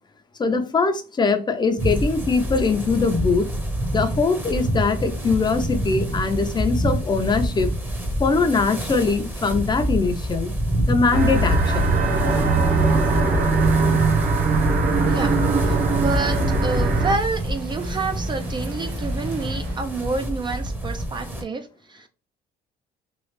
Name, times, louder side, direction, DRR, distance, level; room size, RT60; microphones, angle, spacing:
voice 1, 0.4-3.5 3.9-7.7 8.2-10.5 10.9-12.0, left 4 dB, 25° left, 7 dB, 0.5 m, -22 dB
sound 1, 1.8-21.4, equal, 10° right, 0.8 m, -28 dB
sound 2, 11.1-17.2, right 3 dB, 55° right, 0.9 m, -20 dB
sound 3, 12.3-19.8, right 1 dB, 90° right, 1.0 m, -38 dB
voice 2, 15.1-15.4 15.7-22.1, right 3 dB, 25° right, 7 dB, 0.4 m, -29 dB
3.1 x 2.4 x 3.1 m, 0.35 s
cardioid pair, 110°, 17 cm